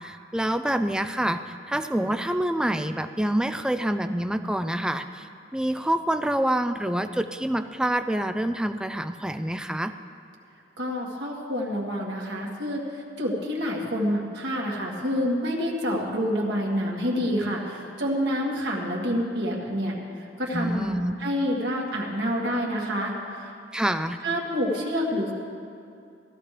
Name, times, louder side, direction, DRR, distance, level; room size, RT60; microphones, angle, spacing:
voice 1, 0.0-5.3 5.5-9.9 20.5-21.1 23.7-24.2, right 1 dB, 5° right, 9 dB, 0.3 m, -27 dB
voice 2, 10.8-23.5 24.2-25.3, equal, 65° right, -2 dB, 2.0 m, -28 dB
16.5 x 13.5 x 3.3 m, 2.6 s
head